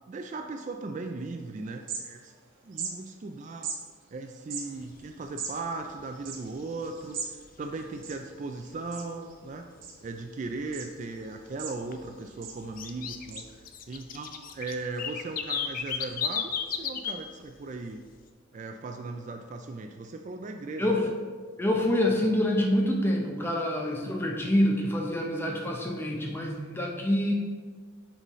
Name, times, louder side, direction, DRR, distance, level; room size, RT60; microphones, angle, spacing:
voice 1, 0.1-2.3 2.6-3.7 4.1-9.7 10.0-13.5 13.9-18.0 18.5-21.1, right 3 dB, 35° right, 5 dB, 0.3 m, -38 dB
sound 1, 1.3-1.4 1.7-2.4 2.7-2.9 3.6-3.8 4.4-7.3 7.6-7.7 7.9-8.6 8.9-9.3 9.8-10.3 10.7-10.9 11.3-12.1 12.4-12.6 13.3-13.4, right 5 dB, 70° right, 0.9 m, -38 dB
sound 2, 4.8-4.9 5.3-5.5 5.8-6.3 6.7-7.9 8.3-8.4 8.9-9.0 9.5-9.6 9.9-10.0 10.5-11.3 11.5-17.2 17.5-17.9, left 7 dB, 45° left, 0.4 m, -34 dB
voice 2, 20.8-21.1 21.6-27.3, left 1 dB, 10° left, 0 dB, 0.7 m, -26 dB
9.0 x 4.0 x 3.1 m, 1.5 s
head